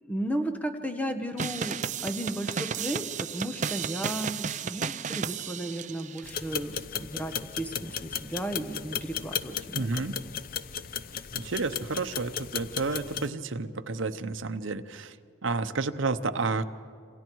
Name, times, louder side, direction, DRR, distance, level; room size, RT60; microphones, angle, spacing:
voice 1, 0.0-9.9, right 1 dB, 5° left, 6 dB, 1.1 m, -34 dB
sound 1, 1.4-6.3, right 6 dB, 35° right, 0.5 m, -33 dB
sound 2, 6.2-13.3, left 8 dB, 45° left, 0.6 m, -35 dB
voice 2, 9.7-10.2 11.3-15.1 15.4-16.6, right 3 dB, 75° right, 9 dB, 0.9 m, -30 dB
27.5 x 26.5 x 4.7 m, 2.3 s
head